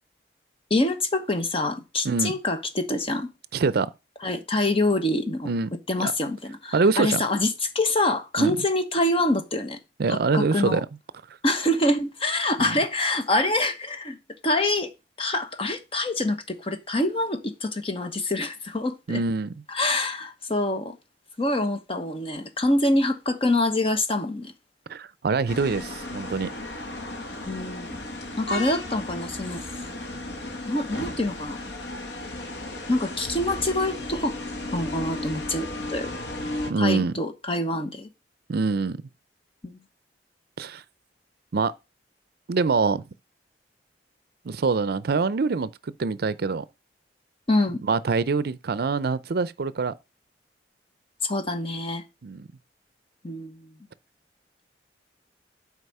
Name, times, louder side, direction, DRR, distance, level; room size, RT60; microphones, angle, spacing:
voice 1, 0.7-3.3 4.2-5.6 5.9-9.8 10.1-10.8 11.4-14.2 14.4-14.9 15.2-19.2 19.7-21.0 21.4-24.5 27.5-28.0 28.4-29.6 30.7-31.6 32.9-34.4 34.7-36.1 36.8-38.1 39.6-39.8 47.5-47.8 51.2-52.0 53.2-53.7, left 1 dB, 35° left, 1.1 m, -25 dB
voice 2, 3.5-3.9 5.5-5.7 6.0-6.1 6.7-7.2 8.4-8.5 10.0-10.9 12.6-12.8 19.1-19.5 24.9-26.5 36.7-37.1 38.5-39.0 40.6-40.8 41.5-41.7 42.5-43.1 44.5-45.7 46.0-46.7 47.9-49.9 52.2-52.5, right 4 dB, 60° right, 0.5 m, -24 dB
sound 1, 25.5-36.7, left 1 dB, 80° left, 1.5 m, -34 dB
8.2 x 4.8 x 5.5 m
head